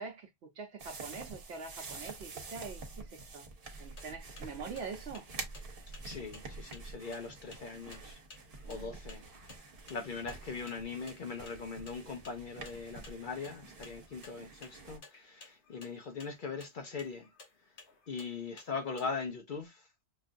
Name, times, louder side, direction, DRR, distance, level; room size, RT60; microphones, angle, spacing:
voice 1, 0.0-3.4 3.8-5.3 8.6-9.0, right 5 dB, 80° right, 0.9 m, -44 dB
sound 1, 0.8-15.0, right 3 dB, 60° right, 1.1 m, -48 dB
sound 2, 3.8-19.0, left 3 dB, 85° left, 1.4 m, -56 dB
voice 2, 6.0-8.2 8.6-9.5 9.9-17.3 18.1-19.8, left 4 dB, 55° left, 0.7 m, -41 dB
5.6 x 2.4 x 2.5 m
omnidirectional pair, 1.1 m